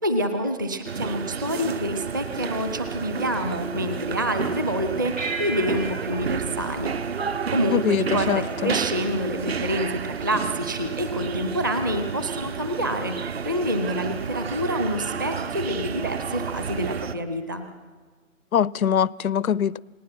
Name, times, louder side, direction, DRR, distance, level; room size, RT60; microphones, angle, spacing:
voice 1, 0.0-6.9 7.5-17.6, equal, 15° right, 0.6 m, -27 dB
sound 1, 0.8-17.1, right 6 dB, 50° right, 1.0 m, -31 dB
sound 2, 5.2-7.9, right 3 dB, 70° right, 6.7 m, -36 dB
voice 2, 7.7-8.8 18.5-19.8, left 9 dB, 85° left, 0.6 m, -23 dB
28.5 x 19.0 x 6.0 m
hypercardioid pair, 160°, 41 cm